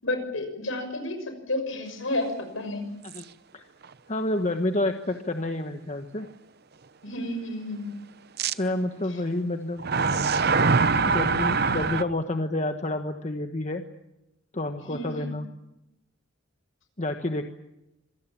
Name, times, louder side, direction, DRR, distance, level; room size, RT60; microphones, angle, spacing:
voice 1, 0.0-2.8 7.0-7.9 14.9-15.3, left 1 dB, 80° left, 7 dB, 6.2 m, -31 dB
sound 1, 3.1-3.2 3.8-3.9 8.4-8.5 9.8-12.0, right 4 dB, 50° right, 0.8 m, -23 dB
voice 2, 4.1-6.3 8.5-9.8 11.0-13.8 14.5-15.5 17.0-17.4, left 1 dB, 35° left, 6 dB, 1.3 m, -29 dB
26.5 x 18.5 x 8.7 m, 0.88 s
head